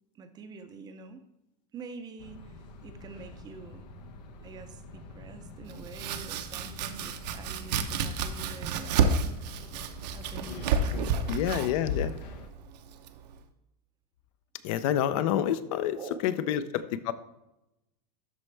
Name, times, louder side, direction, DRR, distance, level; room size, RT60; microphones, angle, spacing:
voice 1, 0.1-1.2 1.7-3.8 4.4-9.2 10.1-11.4 12.0-12.1 15.9-16.6, right 4 dB, 20° right, 8 dB, 0.5 m, -46 dB
sound 1, 2.2-12.5, left 2 dB, 85° left, 1.1 m, -46 dB
Domestic sounds home sounds, 5.7-13.4, right 5 dB, 80° right, 0.8 m, -31 dB
voice 2, 11.3-12.1 14.6-16.0 16.2-17.1, left 10 dB, 55° left, 14 dB, 0.5 m, -28 dB
12.5 x 4.4 x 3.3 m, 0.93 s
supercardioid pair, 165°, 21 cm